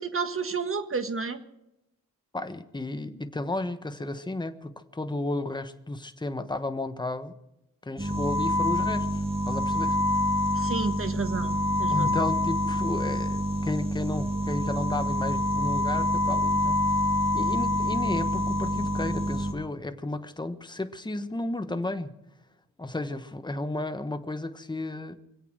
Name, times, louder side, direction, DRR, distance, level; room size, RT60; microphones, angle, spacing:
voice 1, 0.0-1.4 10.5-12.2, right 5 dB, 40° right, 9 dB, 1.6 m, -31 dB
voice 2, 2.3-7.3 7.8-10.0 11.9-17.0 17.3-22.1 22.8-25.2, left 2 dB, 15° left, 8 dB, 1.2 m, -33 dB
sound 1, 8.0-19.5, left 1 dB, 15° right, 2.5 m, -26 dB
25.0 x 8.4 x 6.3 m, 0.88 s
cardioid pair, 95°, 35 cm